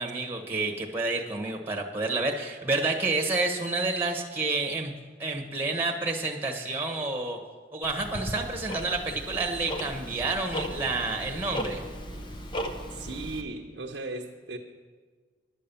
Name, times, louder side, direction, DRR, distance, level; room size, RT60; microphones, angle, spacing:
voice 1, 0.0-4.9 5.2-7.4 7.7-11.8, right 3 dB, 10° right, 1 dB, 1.3 m, -29 dB
Tick-tock, 7.8-13.4, equal, 25° left, 0.8 m, -36 dB
voice 2, 12.9-14.6, right 2 dB, 65° right, -1 dB, 0.9 m, -37 dB
11.0 x 8.6 x 6.9 m, 1.5 s
head